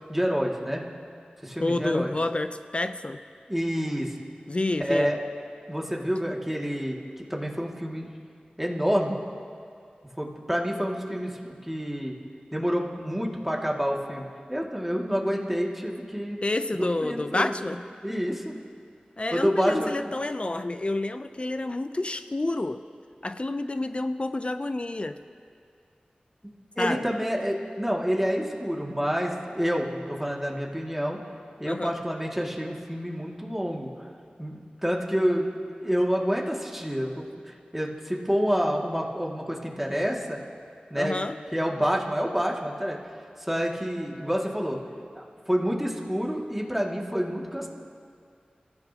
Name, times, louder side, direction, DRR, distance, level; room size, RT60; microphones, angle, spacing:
voice 1, 0.1-0.8 1.4-2.1 3.5-4.1 4.8-5.2 5.7-8.1 8.6-9.2 10.2-12.1 12.5-16.4 17.0-17.6 18.0-18.6 19.3-20.0 26.4-31.2 31.6-33.9 34.4-35.5 35.8-37.3 37.7-40.4 40.9-41.2 41.5-43.0 43.4-44.8 45.1-47.7, equal, 5° right, -2 dB, 2.3 m, -28 dB
voice 2, 1.6-3.2 4.5-5.1 16.4-17.8 19.2-22.8 23.2-25.2 26.8-27.0 31.6-31.9 41.0-41.4, left 2 dB, 40° left, 9 dB, 0.6 m, -29 dB
27.0 x 14.0 x 2.9 m, 2.3 s
cardioid pair, 45°, 3 cm